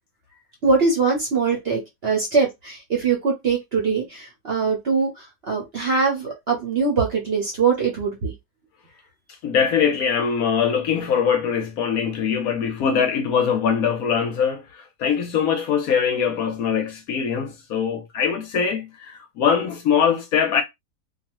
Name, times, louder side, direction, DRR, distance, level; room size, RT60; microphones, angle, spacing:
voice 1, 0.6-8.3, right 4 dB, 50° right, 0.8 m, -22 dB
voice 2, 9.4-20.6, left 7 dB, 70° left, 0.9 m, -22 dB
2.6 x 2.3 x 2.9 m
omnidirectional pair, 1.8 m